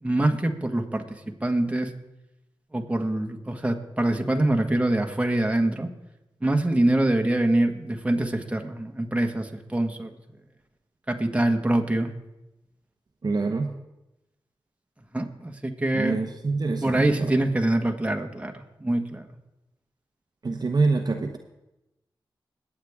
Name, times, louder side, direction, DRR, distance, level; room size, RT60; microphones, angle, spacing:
voice 1, 0.0-1.9 2.7-5.9 6.4-10.1 11.1-12.1 15.1-16.2 16.8-18.5 18.8-19.3, right 1 dB, 15° right, 3 dB, 1.7 m, -24 dB
voice 2, 13.2-13.7 15.9-17.4 20.4-21.4, right 3 dB, 50° right, 4 dB, 1.0 m, -26 dB
21.5 x 8.5 x 3.6 m, 0.94 s
cardioid pair, 50°, 9 cm